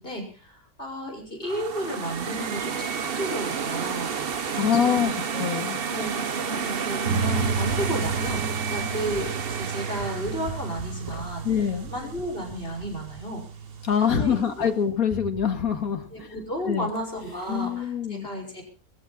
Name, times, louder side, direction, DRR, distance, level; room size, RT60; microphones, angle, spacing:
voice 1, 0.0-4.1 4.5-5.2 5.9-11.5 11.9-13.4 14.0-14.7 16.1-18.6, equal, 40° left, 2 dB, 5.5 m, -33 dB
sound 1, 1.4-12.4, right 6 dB, 45° right, 1.1 m, -31 dB
voice 2, 4.6-5.8 11.4-11.9 13.8-16.3 16.7-16.9 17.5-18.3, left 7 dB, 70° left, 5 dB, 2.4 m, -25 dB
sound 2, 7.1-14.0, right 4 dB, 75° right, 1.9 m, -32 dB
sound 3, 7.3-17.9, left 1 dB, 15° left, 1.8 m, -45 dB
20.0 x 14.5 x 4.1 m, 0.37 s
omnidirectional pair, 1.5 m